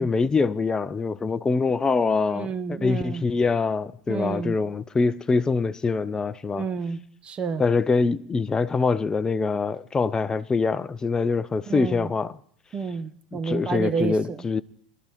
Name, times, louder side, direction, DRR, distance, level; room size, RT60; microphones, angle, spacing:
voice 1, 0.0-6.6 7.6-12.4 13.3-14.6, left 4 dB, 15° left, 0.5 m, -24 dB
voice 2, 2.3-3.2 4.1-4.6 6.5-7.6 11.7-12.1 12.7-14.4, right 5 dB, 30° right, 0.8 m, -30 dB
23.0 x 12.0 x 3.0 m
figure-of-eight pair, 80°, 4 cm